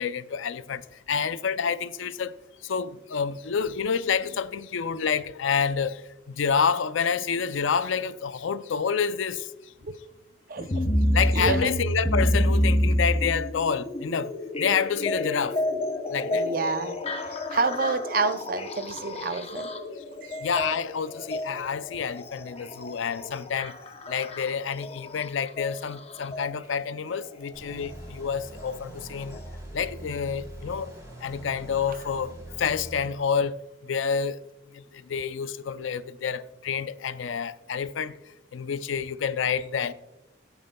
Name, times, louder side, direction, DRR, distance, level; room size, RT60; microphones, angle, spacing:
voice 1, 0.0-2.3 2.6-6.0 6.3-9.5 11.1-14.3 14.6-15.6 16.1-16.5 20.4-23.8 24.1-29.4 29.7-30.9 31.2-33.6 33.8-34.4 34.7-38.1 38.5-39.9, left 6 dB, 80° left, 0.4 m, -28 dB
voice 2, 10.5-10.8 11.3-11.7 16.3-17.0 17.3-19.7 20.2-20.5 31.9-32.0, right 4 dB, 45° right, 0.6 m, -29 dB
sound 1, 10.6-26.5 27.7-27.8 28.6-28.7 29.3-29.4, left 1 dB, 30° left, 0.8 m, -29 dB
sound 2, 27.5-33.1, right 1 dB, 15° right, 3.6 m, -43 dB
17.0 x 8.8 x 2.2 m
head